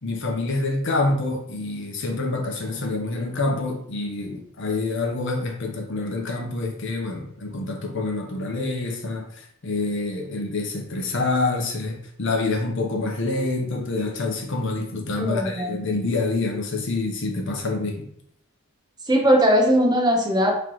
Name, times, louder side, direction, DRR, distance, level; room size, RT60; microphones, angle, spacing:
voice 1, 0.0-18.1, left 2 dB, 55° left, 2 dB, 0.7 m, -27 dB
voice 2, 15.2-15.8 19.0-20.6, equal, 20° right, 1 dB, 0.5 m, -19 dB
3.8 x 3.0 x 3.0 m, 0.70 s
head